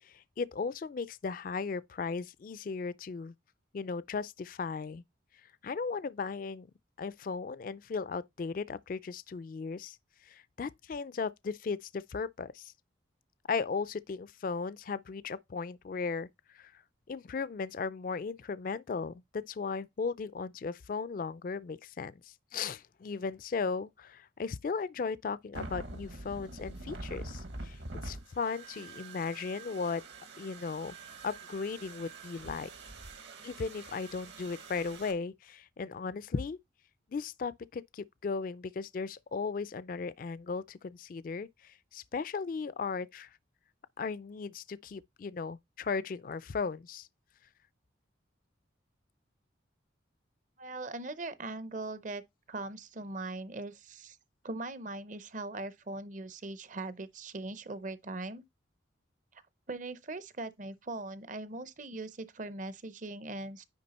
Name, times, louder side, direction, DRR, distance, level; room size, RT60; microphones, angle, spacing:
voice 1, 0.0-3.3 3.7-5.0 5.6-6.7 7.0-10.0 10.2-12.7 13.5-16.3 16.5-16.8 17.1-30.0 30.4-30.9 31.2-32.7 33.4-36.6 37.1-43.3 44.0-47.1, left 5 dB, 45° left, 0.3 m, -36 dB
sound 1, 25.5-35.1, right 2 dB, 65° right, 1.4 m, -45 dB
voice 2, 50.6-52.2 52.5-54.2 54.4-58.4 59.3-59.4 59.7-63.6, right 2 dB, 40° right, 0.6 m, -40 dB
9.7 x 3.5 x 4.1 m
head